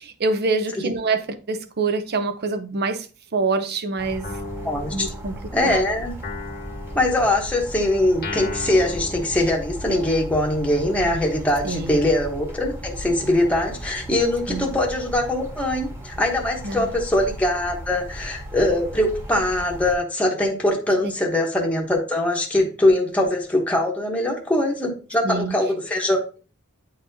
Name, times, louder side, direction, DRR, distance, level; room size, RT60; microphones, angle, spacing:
voice 1, 0.0-3.1 3.3-4.3 4.9-5.3 5.6-5.8 11.6-12.0 14.5-14.7 16.6-16.9 25.2-25.5, right 3 dB, 50° right, 0.7 m, -25 dB
sound 1, 4.0-20.0, equal, 10° right, 1.4 m, -36 dB
Guitar, 4.2-5.7 6.2-10.1, left 3 dB, 50° left, 1.0 m, -36 dB
voice 2, 4.6-5.1 5.5-6.1 6.9-26.4, left 1 dB, 5° left, 1.0 m, -22 dB
9.1 x 4.0 x 2.7 m
head